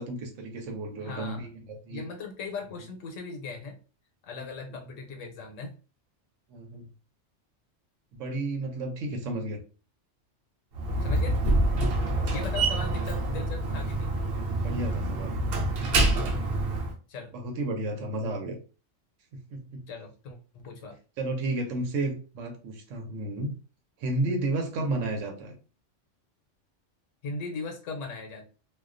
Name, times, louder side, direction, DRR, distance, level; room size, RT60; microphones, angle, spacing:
voice 1, 0.0-2.0 6.5-6.9 8.1-9.6 12.1-12.6 14.6-15.4 17.3-18.6 19.3-19.9 21.2-23.5 24.0-25.6, right 2 dB, 85° right, 4 dB, 1.0 m, -32 dB
voice 2, 1.0-1.5 1.9-3.8 4.2-5.8 11.0-11.4 12.3-14.1 17.1-17.3 19.9-21.0 27.2-28.5, left 4 dB, 90° left, 3 dB, 0.9 m, -38 dB
Slam, 10.7-16.9, right 2 dB, 65° right, 0.7 m, -26 dB
2.3 x 2.2 x 2.4 m, 0.36 s
omnidirectional pair, 1.3 m